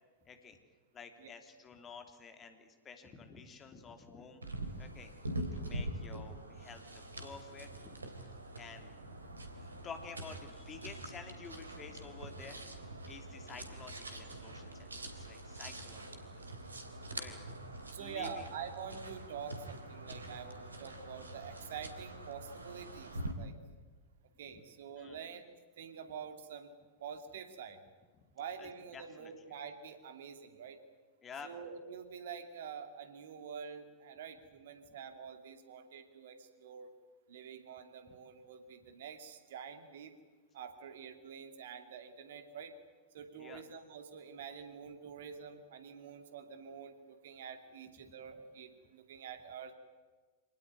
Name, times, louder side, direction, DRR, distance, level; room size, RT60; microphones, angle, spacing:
voice 1, 0.2-0.6 0.9-5.1 5.5-6.8 7.2-8.9 9.8-12.6 13.1-16.5 17.1-17.4 17.9-18.4 24.4-24.6 25.0-25.2 28.6-29.3 31.2-31.5 43.3-43.6 48.0-48.1, left 5 dB, 25° left, 6 dB, 3.1 m, -51 dB
sound 1, 4.4-23.3, right 1 dB, 80° right, 2.9 m, -45 dB
voice 2, 17.9-23.6 24.4-25.5 25.8-26.7 27.0-27.8 28.3-30.8 31.4-36.9 37.3-40.1 40.5-42.7 43.1-49.7, right 7 dB, 60° right, 8 dB, 2.6 m, -47 dB
26.0 x 19.0 x 9.7 m, 1.4 s
figure-of-eight pair, 90°, 0 cm